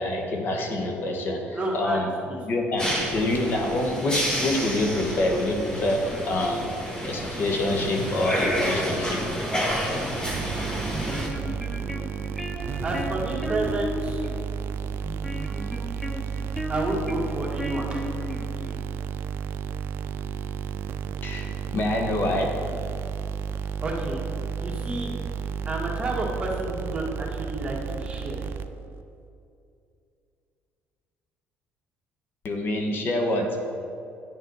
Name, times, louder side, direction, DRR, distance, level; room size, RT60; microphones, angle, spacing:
voice 1, 0.0-2.1 2.4-6.7 7.0-9.2 21.2-22.6 32.4-33.6, left 1 dB, 50° left, 3 dB, 1.2 m, -26 dB
voice 2, 1.5-2.0 2.3-2.4 12.8-14.3 16.7-18.0 23.8-24.2 24.6-25.1 25.7-28.4, right 2 dB, 25° right, -2 dB, 1.8 m, -30 dB
sound 1, 2.8-11.3, equal, 20° left, 1.7 m, -29 dB
sound 2, 10.2-29.0, right 7 dB, 60° right, 0.4 m, -32 dB
sound 3, 10.8-18.9, left 1 dB, ahead, 0.5 m, -35 dB
10.5 x 6.8 x 4.0 m, 2.6 s
cardioid pair, 95°, 4 cm